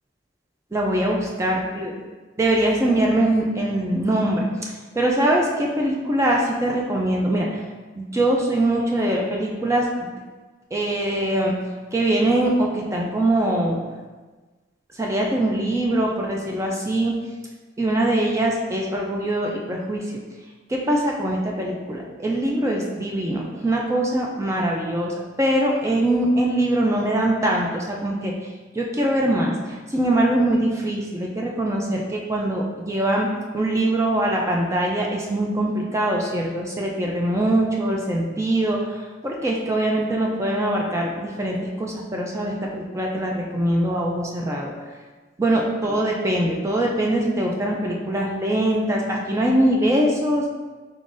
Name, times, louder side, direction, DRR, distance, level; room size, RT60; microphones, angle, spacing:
voice 1, 0.7-1.9 2.4-4.5 4.9-7.6 7.9-10.1 10.7-11.5 11.9-13.8 14.9-17.1 17.8-20.1 20.7-28.3 28.7-33.3 33.5-44.7 45.4-50.5, right 1 dB, 15° right, -1 dB, 0.3 m, -22 dB
4.0 x 3.8 x 2.5 m, 1.3 s
head